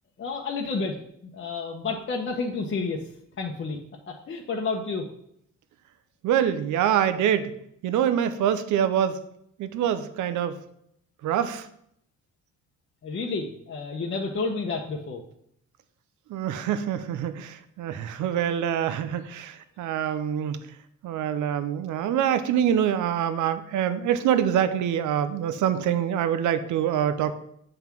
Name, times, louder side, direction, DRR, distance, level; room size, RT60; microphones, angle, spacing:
voice 1, 0.2-1.0 1.2-3.1 3.4-3.8 4.1-5.1 13.0-15.2, left 4 dB, 40° left, 1 dB, 0.9 m, -30 dB
voice 2, 6.2-7.5 7.8-9.2 9.6-10.6 11.2-11.7 16.3-20.6 21.0-27.3, right 9 dB, 75° right, 11 dB, 0.7 m, -25 dB
7.8 x 3.6 x 5.9 m, 0.72 s
cardioid pair, 90°, 30 cm